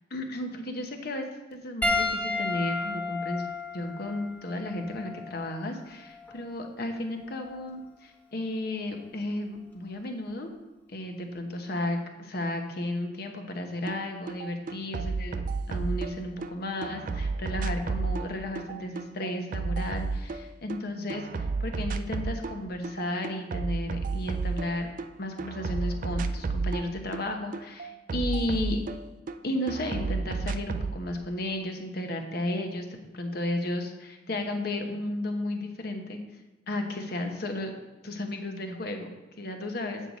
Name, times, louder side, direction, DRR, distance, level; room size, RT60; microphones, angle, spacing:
voice 1, 0.1-3.4 3.7-10.5 10.9-24.9 25.2-28.8 29.4-32.9 33.1-36.2 36.7-37.7 38.0-40.0, left 1 dB, 60° left, 4 dB, 1.0 m, -33 dB
Piano, 1.8-6.5 7.4-7.6 9.5-9.6, left 3 dB, 10° left, 0.9 m, -32 dB
sound 1, 13.9-14.0 14.3-16.5 16.8-20.8 21.1-22.6 22.8-25.1 25.4-29.4 29.7-31.0, right 4 dB, 45° right, 0.4 m, -31 dB
7.6 x 6.4 x 4.1 m, 1.0 s
head